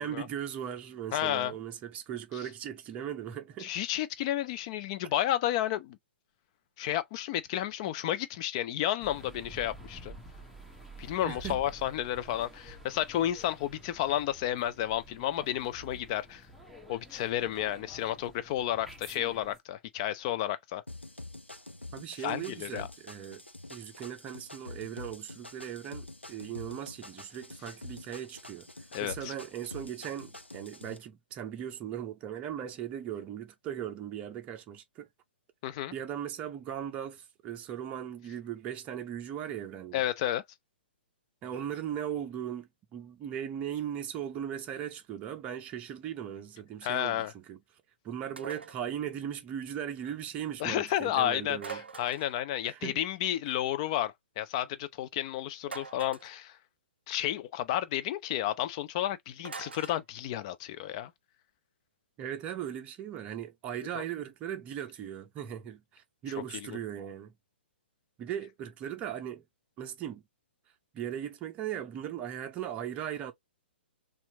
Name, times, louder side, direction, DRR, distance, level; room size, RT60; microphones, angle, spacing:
voice 1, 0.0-3.7 11.2-11.6 21.9-23.4 23.7-35.1 35.9-40.0 41.4-47.6 48.0-51.8 52.6-53.0 62.2-67.3 68.2-69.4 69.8-70.2 70.9-73.3, right 9 dB, 20° right, 0.7 m, -38 dB
voice 2, 1.1-1.5 3.6-6.0 6.8-10.1 11.0-16.4 16.9-20.8 22.2-22.9 28.9-29.3 35.6-35.9 39.9-40.4 46.8-47.3 50.6-56.6 57.1-61.1 63.9-64.0, left 12 dB, 30° left, 0.5 m, -31 dB
sound 1, 9.0-19.6, right 1 dB, ahead, 1.0 m, -50 dB
sound 2, 20.9-31.0, left 2 dB, 85° left, 0.9 m, -47 dB
sound 3, 48.4-48.9 51.6-52.4 55.6-56.3 59.4-60.0, right 5 dB, 70° right, 0.4 m, -43 dB
4.3 x 2.5 x 2.9 m
figure-of-eight pair, 120°, 6 cm